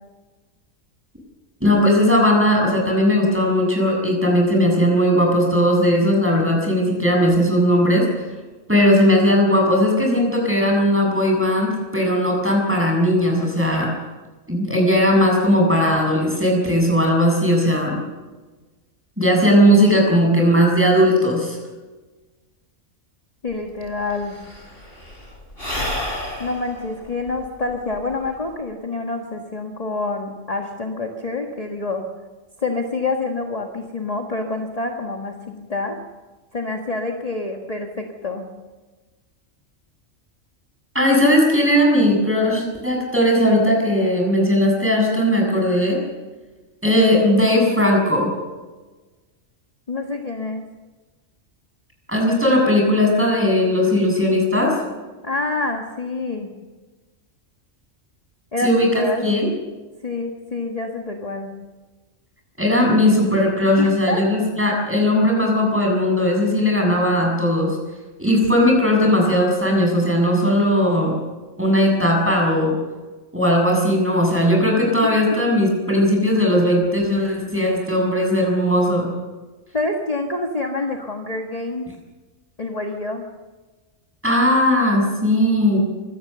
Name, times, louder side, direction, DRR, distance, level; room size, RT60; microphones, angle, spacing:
voice 1, 1.6-8.3 8.7-13.9 14.5-18.0 19.2-21.6 40.9-46.0 46.8-48.3 52.1-54.7 58.6-59.5 62.6-67.8 68.2-71.1 71.6-72.7 73.3-79.1 84.2-85.8, equal, 10° right, 0 dB, 7.3 m, -18 dB
voice 2, 23.4-24.4 26.4-32.0 32.6-36.0 36.5-38.5 49.9-50.6 55.2-56.5 58.5-59.3 60.0-61.5 63.8-64.5 75.3-75.4 79.7-81.9 82.6-83.2, left 3 dB, 30° left, 2 dB, 1.7 m, -27 dB
Sigh / Breathing, 23.5-23.6 23.8-28.5, left 1 dB, 50° left, 4.0 m, -31 dB
24.0 x 17.5 x 6.9 m, 1.3 s
omnidirectional pair, 1.3 m